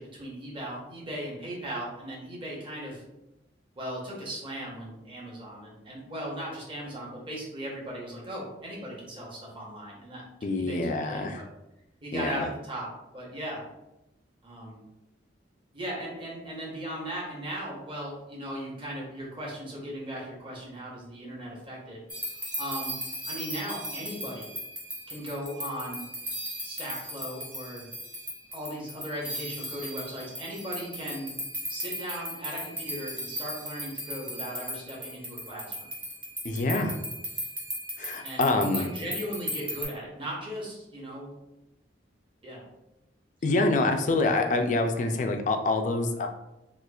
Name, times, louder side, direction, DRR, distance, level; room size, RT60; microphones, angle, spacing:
voice 1, 0.0-3.0 3.8-11.4 12.0-12.9 13.1-13.6 14.4-14.8 15.7-22.0 22.6-23.0 23.3-24.5 25.1-26.1 26.6-27.9 28.5-31.3 31.7-35.9 38.2-41.4 42.4-42.6 43.5-43.6, equal, 25° right, -4 dB, 0.9 m, -37 dB
voice 2, 10.4-11.4 12.1-12.5 36.4-37.0 38.0-38.9 43.4-46.3, left 2 dB, 40° left, 5 dB, 0.3 m, -26 dB
sound 1, 22.1-39.8, equal, 10° right, 0.6 m, -37 dB
4.3 x 2.4 x 2.3 m, 0.93 s
head